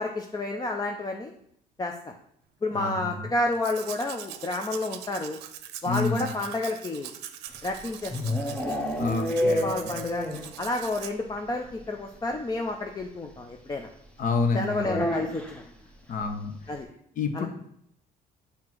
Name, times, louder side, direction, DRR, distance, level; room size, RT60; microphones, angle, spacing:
voice 1, 0.0-1.3 1.8-2.1 2.6-5.4 5.8-7.1 7.6-8.2 8.5-8.7 9.3-10.3 10.6-13.9 14.5-15.6 16.7-16.9 17.3-17.5, left 2 dB, 25° left, 3 dB, 0.6 m, -30 dB
voice 2, 2.7-3.3 5.9-6.3 9.0-10.0 14.2-15.1 16.1-16.5 17.2-17.5, left 4 dB, 50° left, 7 dB, 1.0 m, -29 dB
Domestic sounds home sounds, 3.5-11.1, right 11 dB, 90° right, 0.6 m, -42 dB
sound 1, 7.5-10.6 10.9-11.0 11.3-11.4 11.6-11.8 13.0-13.1 14.8-15.7, left 1 dB, 5° left, 0.9 m, -29 dB
7.5 x 2.9 x 6.0 m, 0.71 s
cardioid pair, 110°, 17 cm